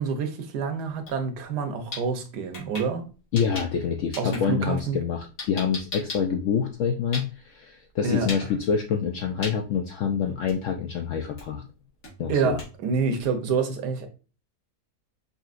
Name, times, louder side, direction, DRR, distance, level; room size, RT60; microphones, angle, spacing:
voice 1, 0.0-3.1 4.2-5.0 8.0-8.3 12.3-14.1, right 5 dB, 80° right, 1.3 m, -27 dB
sound 1, 0.9-1.2 1.5-3.8 4.1-7.6 8.2-8.5 8.8-9.1 9.4-9.6 10.0-10.1 10.5-10.8 11.4-11.6 12.0-13.5, left 3 dB, 55° left, 2.0 m, -38 dB
voice 2, 3.3-11.6 12.2-12.6, left 7 dB, 70° left, 0.7 m, -26 dB
5.4 x 2.7 x 2.5 m
omnidirectional pair, 1.8 m